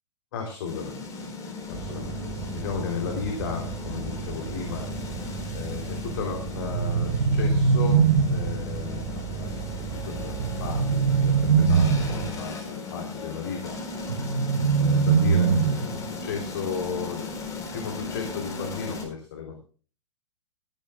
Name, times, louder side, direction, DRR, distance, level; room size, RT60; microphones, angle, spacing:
voice 1, 0.3-1.3 1.7-4.9 5.5-13.8 14.8-19.6, left 6 dB, 50° left, 2 dB, 3.4 m, -35 dB
sound 1, 0.6-19.1, left 4 dB, 20° left, 4.4 m, -37 dB
sound 2, 1.7-12.3, right 8 dB, 25° right, 1.0 m, -36 dB
sound 3, 6.7-8.7 10.4-12.3 14.1-16.1, right 5 dB, 65° right, 3.7 m, -22 dB
18.5 x 14.5 x 2.4 m, 0.39 s
figure-of-eight pair, 105°, 16 cm